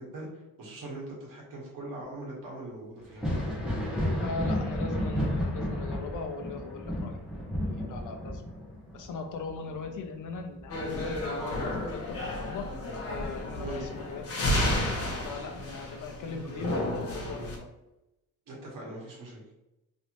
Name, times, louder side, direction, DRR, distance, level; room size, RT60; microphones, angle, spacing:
voice 1, 0.0-3.3 13.6-13.8 18.5-19.4, right 2 dB, 70° right, -3 dB, 1.4 m, -41 dB
Thunder, 3.0-12.4 12.8-14.0 15.5-15.6 16.4-16.6, equal, 5° right, 0.8 m, -33 dB
voice 2, 4.2-7.2 7.7-8.4 8.9-12.7 13.0-14.9 15.2-17.7, left 4 dB, 60° left, 5 dB, 0.6 m, -39 dB
sound 1, 10.7-17.6, left 1 dB, 45° left, 0.9 m, -32 dB
3.2 x 2.8 x 3.0 m, 0.92 s
cardioid pair, 160°, 34 cm